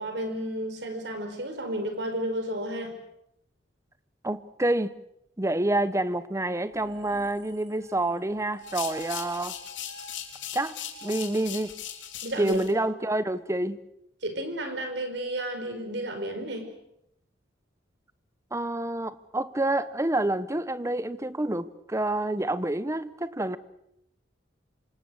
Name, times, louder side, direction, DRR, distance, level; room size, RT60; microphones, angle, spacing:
voice 1, 0.0-3.0 12.2-12.6 14.2-16.7, right 1 dB, 65° right, 5.2 m, -32 dB
voice 2, 4.2-5.0 5.4-9.5 10.5-11.7 12.4-13.8 18.5-23.6, right 1 dB, 15° right, 0.9 m, -28 dB
sound 1, 6.7-12.1, right 5 dB, 85° right, 4.4 m, -47 dB
sound 2, 8.6-12.7, left 10 dB, 80° left, 3.7 m, -39 dB
28.0 x 25.5 x 6.5 m
head